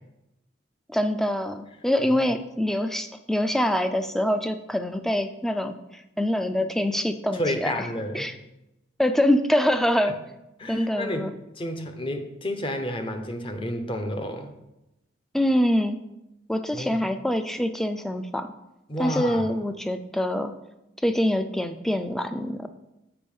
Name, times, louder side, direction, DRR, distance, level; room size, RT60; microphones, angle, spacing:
voice 1, 0.9-7.9 8.1-8.4 9.0-10.2 10.7-11.3 15.3-16.0 16.5-18.5 19.0-20.5 21.0-22.7, left 1 dB, ahead, 8 dB, 0.3 m, -25 dB
voice 2, 7.3-8.3 10.6-11.3 11.6-14.5 16.7-17.0 18.9-19.5, left 1 dB, 25° left, 6 dB, 0.7 m, -30 dB
6.8 x 5.2 x 5.4 m, 0.93 s
head